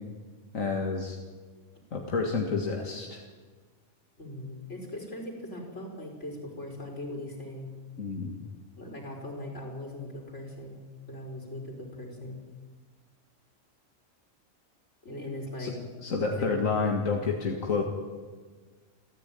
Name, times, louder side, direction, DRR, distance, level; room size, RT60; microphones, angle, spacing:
voice 1, 0.5-1.2 1.9-3.2 8.0-8.4 15.6-15.7 16.0-17.8, left 4 dB, 90° left, 1 dB, 2.3 m, -29 dB
voice 2, 4.2-7.7 8.8-10.8 11.1-12.4 15.0-15.8 16.2-16.5, left 1 dB, 60° left, 1 dB, 5.4 m, -40 dB
28.5 x 14.0 x 9.2 m, 1.4 s
omnidirectional pair, 1.4 m